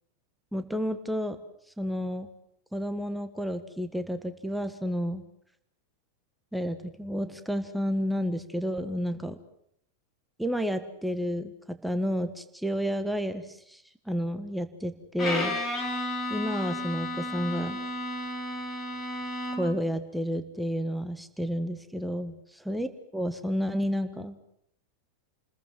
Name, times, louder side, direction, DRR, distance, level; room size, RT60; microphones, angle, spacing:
voice 1, 0.5-1.4 1.8-2.3 2.7-5.2 6.5-9.4 10.4-15.6 16.3-17.8 19.6-22.4 22.6-24.3, equal, ahead, 9 dB, 1.5 m, -31 dB
Bowed string instrument, 15.2-19.9, left 1 dB, 20° left, 6.0 m, -33 dB
29.0 x 21.0 x 7.7 m, 0.71 s
figure-of-eight pair, 90°, 0 cm